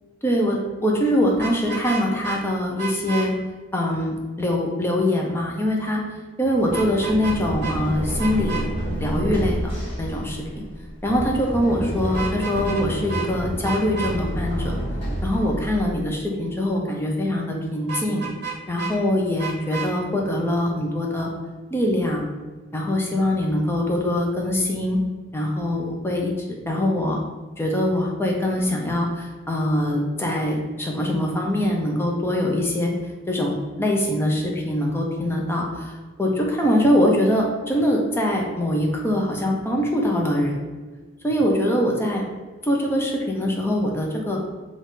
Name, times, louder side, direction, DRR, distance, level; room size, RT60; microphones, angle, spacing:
voice 1, 0.2-3.3 3.7-6.0 6.4-8.7 9.0-10.6 11.0-14.8 15.2-18.3 18.7-21.3 21.7-22.2 22.7-25.0 25.3-27.2 27.6-40.5 41.2-42.2 42.6-44.4, left 1 dB, 10° left, -1 dB, 0.5 m, -23 dB
Vehicle horn car horn honking, 1.3-2.4 2.8-3.3 6.7-7.4 7.6-7.7 8.2-8.6 12.1-12.8 13.1-13.3 13.6-14.1 17.9-18.9 19.4-19.9, right 6 dB, 50° right, 0.9 m, -31 dB
Run, 6.6-16.3, right 1 dB, 30° left, 1.1 m, -29 dB
4.0 x 2.4 x 3.6 m, 1.3 s
head